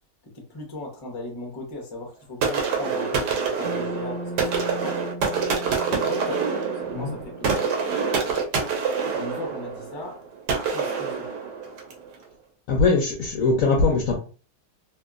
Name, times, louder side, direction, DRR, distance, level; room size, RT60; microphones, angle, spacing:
voice 1, 0.3-5.0 5.8-7.7 9.1-10.2 10.7-11.3, left 2 dB, 35° left, 0.4 m, -37 dB
sound 1, 2.4-12.1, right 5 dB, 70° right, 1.2 m, -26 dB
Bass guitar, 3.6-8.0, right 1 dB, 85° right, 1.5 m, -38 dB
voice 2, 12.7-14.1, left 3 dB, 65° left, 0.8 m, -21 dB
2.9 x 2.6 x 2.4 m
omnidirectional pair, 1.9 m